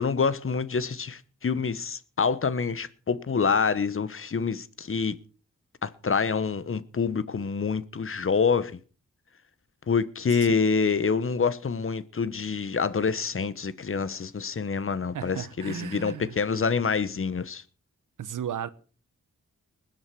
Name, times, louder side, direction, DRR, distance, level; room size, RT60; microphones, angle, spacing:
voice 1, 0.0-5.2 5.8-8.8 9.9-17.6, left 5 dB, 45° left, 1.1 m, -27 dB
voice 2, 15.1-16.4 18.2-18.7, right 9 dB, 85° right, 1.1 m, -35 dB
20.0 x 7.9 x 6.0 m
cardioid pair, 85°, 31 cm